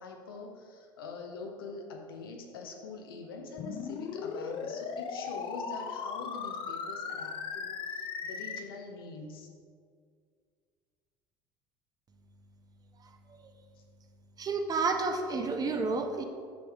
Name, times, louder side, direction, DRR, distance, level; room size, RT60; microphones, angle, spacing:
voice 1, 0.0-9.5, left 3 dB, 90° left, 2 dB, 0.8 m, -44 dB
sound 1, 3.6-8.6, left 6 dB, 50° left, 0.6 m, -37 dB
voice 2, 14.4-16.2, right 4 dB, 35° right, 5 dB, 0.8 m, -30 dB
6.3 x 6.1 x 3.5 m, 2.1 s
hypercardioid pair, 75°, 12 cm